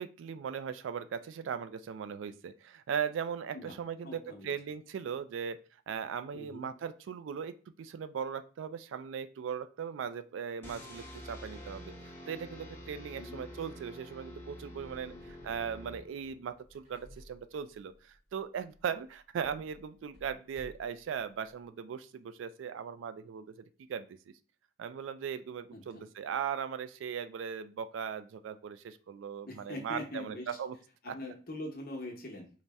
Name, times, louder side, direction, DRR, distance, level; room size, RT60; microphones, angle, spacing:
voice 1, 0.0-5.6 5.9-11.9 12.3-24.3 24.8-30.8 31.1-31.2, right 7 dB, 80° right, 12 dB, 0.3 m, -38 dB
voice 2, 4.0-4.5 6.3-6.7 13.2-13.4 15.1-15.3 25.7-26.0 29.4-30.5 31.0-32.5, left 1 dB, 50° left, 1 dB, 0.8 m, -43 dB
sound 1, 10.6-16.5, equal, 10° left, 0.7 m, -48 dB
sound 2, 14.7-21.7, equal, 35° right, 0.8 m, -58 dB
4.0 x 2.1 x 3.4 m, 0.39 s
head